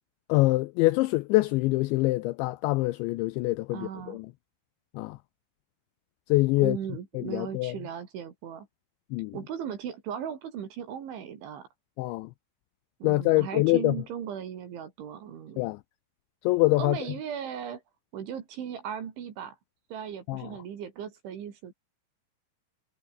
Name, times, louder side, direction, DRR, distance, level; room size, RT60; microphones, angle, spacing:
voice 1, 0.3-4.3 4.9-5.2 6.3-6.8 7.1-7.8 9.1-9.4 12.0-12.3 13.0-14.0 15.6-15.8 16.4-17.0 20.3-20.5, left 20 dB, 90° left, 2.6 m, -25 dB
voice 2, 3.7-4.2 6.6-8.7 9.3-11.7 13.0-15.6 16.8-17.8 18.1-19.6 19.9-21.7, right 8 dB, 65° right, 5.2 m, -37 dB
omnidirectional pair, 5.9 m